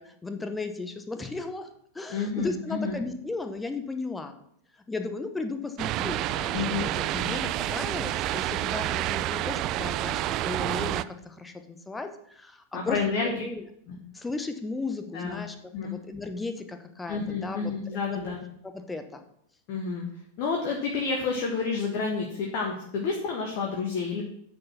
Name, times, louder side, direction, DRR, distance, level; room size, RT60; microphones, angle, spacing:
voice 1, 0.0-1.7 1.9-4.3 4.9-13.6 14.1-15.6 15.8-17.7 18.1-18.3 18.6-19.2, left 3 dB, 10° left, 7 dB, 1.0 m, -35 dB
voice 2, 2.1-3.0 6.5-7.3 12.7-13.4 13.9-14.0 15.1-15.4 15.7-16.0 17.1-18.4 19.7-20.0 20.4-24.2, left 4 dB, 45° left, 0 dB, 1.5 m, -30 dB
cars on wet street-stereo+center, 5.8-11.0, right 14 dB, 40° right, 0.3 m, -29 dB
9.5 x 4.8 x 5.8 m, 0.69 s
figure-of-eight pair, 90°, 0 cm